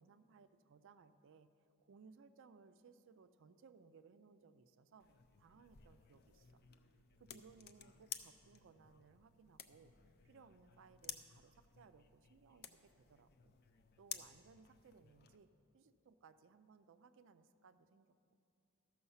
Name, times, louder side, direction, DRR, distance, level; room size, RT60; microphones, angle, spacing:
voice 1, 0.0-1.5 1.8-5.1 5.4-6.6 7.2-9.9 10.2-13.5 14.0-15.5 15.7-18.2, right 5 dB, 60° right, 11 dB, 0.4 m, -64 dB
sound 1, 5.0-15.4, left 8 dB, 45° left, 0.5 m, -54 dB
13.5 x 6.4 x 5.5 m, 2.5 s
head